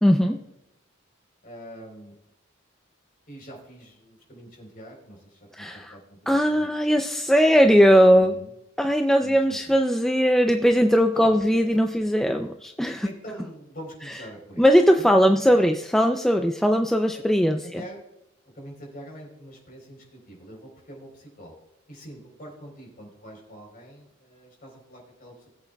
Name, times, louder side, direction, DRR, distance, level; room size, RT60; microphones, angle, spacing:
voice 1, 0.0-0.4 5.5-6.0 6.3-8.4 8.8-13.1 14.1-14.2 14.6-17.8, equal, ahead, 4 dB, 0.3 m, -19 dB
voice 2, 1.4-2.2 3.3-6.7 8.2-8.5 9.2-9.4 9.7-9.8 11.1-11.4 13.0-14.7 15.0-15.2 15.5-15.6 17.4-18.0 18.6-21.5 21.9-25.5, equal, 45° left, 0 dB, 3.8 m, -43 dB
20.0 x 8.2 x 2.3 m, 0.86 s
head